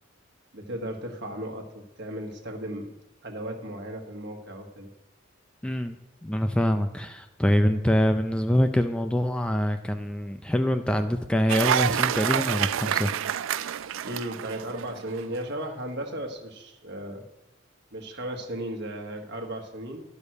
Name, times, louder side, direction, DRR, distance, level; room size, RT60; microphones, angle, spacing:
voice 1, 0.5-2.9 3.2-4.9 14.0-17.2 17.9-20.0, right 1 dB, 55° right, 3 dB, 1.4 m, -35 dB
voice 2, 5.6-13.8, equal, 5° left, 7 dB, 0.3 m, -25 dB
Cheering / Applause, 11.5-15.2, right 9 dB, 75° right, 0.3 m, -27 dB
10.5 x 5.3 x 6.4 m, 0.97 s
head